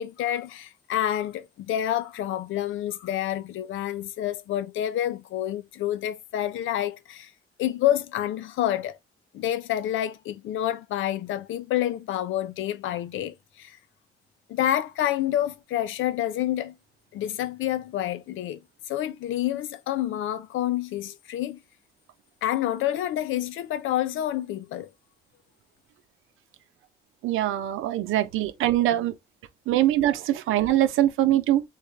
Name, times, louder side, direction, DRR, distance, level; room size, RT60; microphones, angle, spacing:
voice 1, 0.0-7.3 7.6-9.0 9.3-13.8 14.5-16.8 17.1-18.6 18.9-21.6 22.4-24.9, left 12 dB, 80° left, 0.6 m, -28 dB
voice 2, 27.2-29.1 29.7-31.6, right 13 dB, 90° right, 0.8 m, -23 dB
4.1 x 3.6 x 3.2 m
cardioid pair, 90°, 20 cm